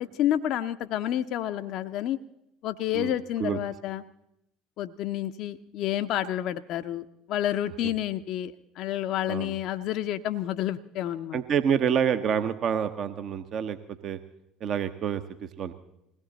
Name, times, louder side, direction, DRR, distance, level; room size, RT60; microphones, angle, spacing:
voice 1, 0.0-2.2 2.6-4.0 4.8-11.4, left 12 dB, 55° left, 10 dB, 0.6 m, -29 dB
voice 2, 11.3-14.2 14.6-15.7, right 8 dB, 50° right, 9 dB, 0.9 m, -28 dB
21.0 x 17.5 x 4.0 m, 0.80 s
figure-of-eight pair, 65°, 0 cm